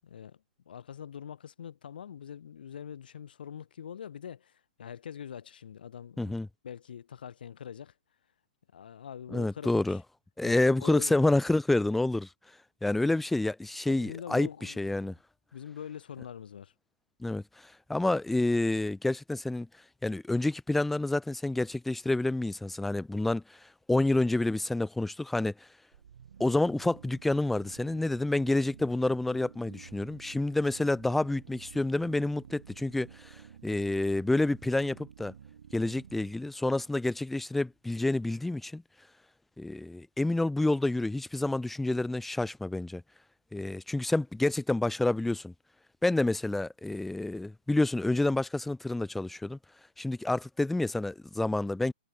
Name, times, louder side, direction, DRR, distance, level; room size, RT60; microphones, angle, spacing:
voice 1, 0.0-6.4 6.6-7.9 8.7-10.0 10.4-11.2 13.9-15.2 15.5-16.7, left 8 dB, 70° left, 6.7 m, -44 dB
voice 2, 6.2-6.5 9.3-10.0 10.4-12.3 12.8-15.1 17.2-19.7 20.0-25.5 26.4-35.3 35.7-38.8 39.6-43.0 43.5-45.5 46.0-49.6 50.0-51.9, left 2 dB, 5° left, 0.4 m, -28 dB
sound 1, 25.9-37.7, right 8 dB, 70° right, 3.9 m, -52 dB
hypercardioid pair, 140°, 5 cm